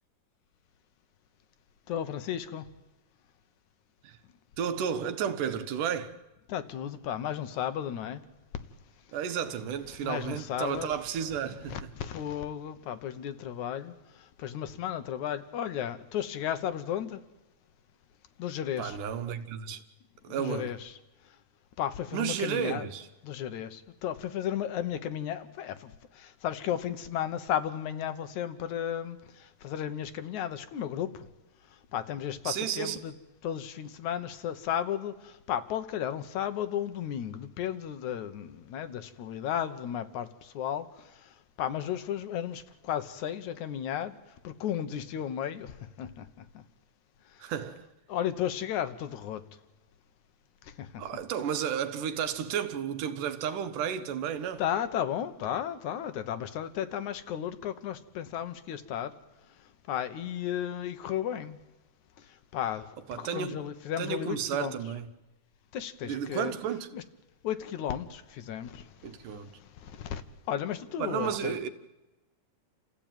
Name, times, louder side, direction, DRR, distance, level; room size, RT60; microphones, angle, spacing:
voice 1, 1.9-2.6 6.5-8.2 10.0-10.9 11.4-13.9 14.4-17.2 18.4-19.0 20.4-20.9 21.8-22.9 23.2-25.9 26.4-29.2 29.6-31.1 31.9-33.1 33.4-35.1 35.5-40.3 40.6-40.9 41.6-44.1 44.4-46.2 48.1-49.4 50.8-50.9 54.6-59.1 59.9-61.6 62.5-62.9 63.1-64.8 65.7-66.5 66.9-67.0 67.4-68.8 70.0-70.2 70.5-71.5, left 10 dB, 70° left, 2.3 m, -34 dB
voice 2, 4.6-6.1 9.1-11.9 18.8-19.8 20.2-20.7 22.1-23.1 32.4-33.0 47.4-47.9 51.0-54.6 63.1-63.6 64.0-65.1 66.0-66.9 69.0-69.5 71.0-71.7, right 8 dB, 80° right, 2.7 m, -32 dB
28.5 x 15.5 x 9.1 m
omnidirectional pair, 3.6 m